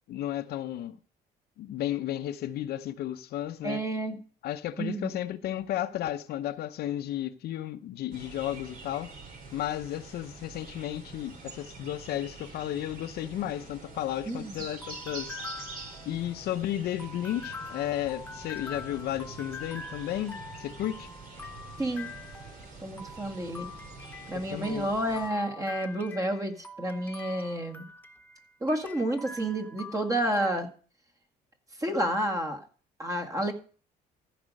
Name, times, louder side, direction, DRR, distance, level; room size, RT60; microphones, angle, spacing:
voice 1, 0.1-1.0 1.6-3.8 4.4-9.1 9.5-15.3 16.1-21.1 24.5-24.9, left 12 dB, 70° left, 0.8 m, -33 dB
voice 2, 3.6-4.2 4.8-5.1 14.3-14.6 21.8-22.1 22.8-23.7 24.3-27.9 28.6-30.7 31.8-32.6 33.0-33.5, right 1 dB, 20° right, 1.8 m, -30 dB
sound 1, 8.1-25.3, right 4 dB, 60° right, 3.8 m, -46 dB
sound 2, 13.8-30.5, left 4 dB, 10° left, 0.8 m, -45 dB
14.5 x 5.1 x 6.4 m
cardioid pair, 110°, 17 cm